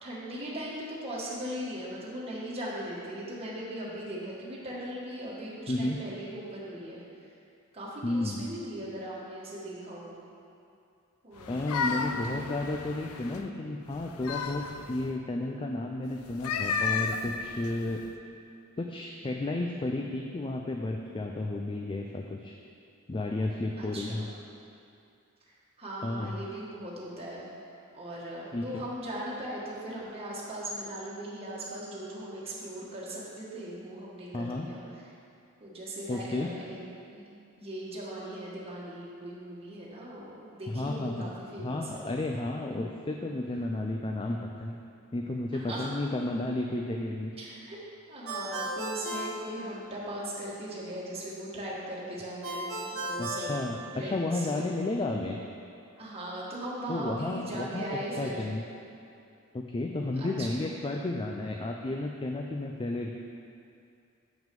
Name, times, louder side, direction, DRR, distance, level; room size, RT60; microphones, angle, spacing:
voice 1, 0.0-7.0 7.7-10.2 11.2-11.6 11.9-12.5 23.8-24.2 25.8-27.5 27.9-34.8 35.6-36.8 37.1-37.2 37.6-42.0 45.5-46.0 47.4-47.8 48.1-53.6 53.9-54.8 56.0-58.4 60.2-60.5 60.8-61.0, right 1 dB, 30° right, -7 dB, 1.5 m, -39 dB
voice 2, 5.7-6.0 8.0-8.4 11.5-14.6 14.9-18.0 18.8-22.5 23.1-24.3 26.0-26.4 28.5-28.8 34.3-34.7 36.1-36.5 40.7-41.3 41.6-44.7 45.1-47.3 53.2-55.4 56.9-57.8 58.2-58.6 59.5-63.1, left 2 dB, 25° left, 1 dB, 0.4 m, -32 dB
sound 1, 11.4-13.5 13.9-15.1 16.3-18.1, left 5 dB, 85° left, 0.5 m, -33 dB
Ringtone, 48.3-50.2 52.4-54.4, right 1 dB, 80° right, 1.3 m, -36 dB
7.4 x 6.1 x 5.3 m, 2.5 s
head